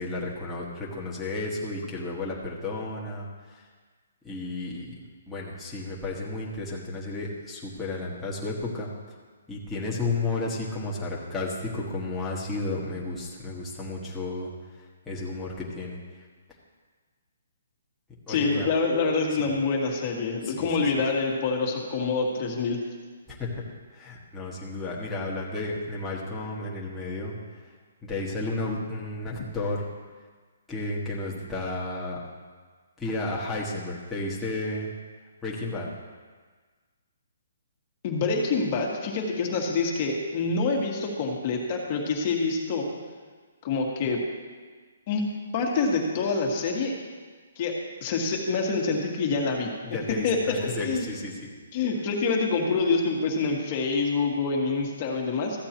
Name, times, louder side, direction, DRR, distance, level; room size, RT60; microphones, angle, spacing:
voice 1, 0.0-3.6 4.2-8.9 9.5-14.5 15.0-16.2 18.3-18.7 19.4-19.5 20.4-20.7 23.3-23.6 23.9-27.3 28.0-29.9 30.7-32.2 33.0-34.9 35.4-35.9 49.8-51.5, left 2 dB, 5° left, -7 dB, 1.5 m, -32 dB
voice 2, 18.3-22.8 38.0-42.9 43.6-44.2 45.1-45.3 45.5-46.9 47.6-47.7 48.0-49.7 50.1-50.6 50.8-51.1 51.7-55.6, left 4 dB, 30° left, 0 dB, 1.7 m, -26 dB
14.5 x 8.7 x 3.0 m, 1.5 s
hypercardioid pair, 165°, 0 cm